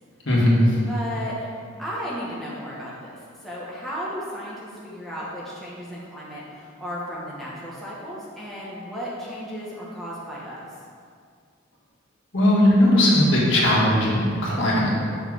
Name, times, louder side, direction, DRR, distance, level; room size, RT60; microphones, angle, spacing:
voice 1, 0.2-0.8 12.3-14.9, left 1 dB, 70° left, -5 dB, 1.7 m, -18 dB
voice 2, 0.9-1.5 1.8-10.6, equal, ahead, -8 dB, 1.1 m, -34 dB
5.6 x 4.6 x 6.1 m, 2.2 s
head